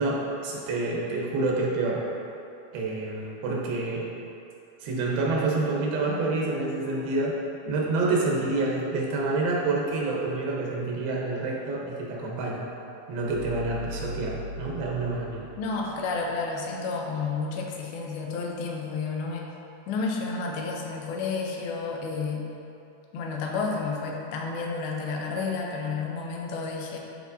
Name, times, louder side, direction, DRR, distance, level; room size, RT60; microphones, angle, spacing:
voice 1, 0.0-2.0 2.7-4.1 4.8-7.4 7.7-12.7 13.1-15.5, right 3 dB, 90° right, -3 dB, 3.1 m, -28 dB
Piano Stab with Bass, 13.1-16.3, left 1 dB, 65° left, 3.3 m, -39 dB
voice 2, 15.6-19.5 19.9-22.5 23.1-27.0, left 4 dB, 85° left, 0 dB, 2.7 m, -31 dB
11.5 x 4.4 x 2.7 m, 2.7 s
omnidirectional pair, 4.2 m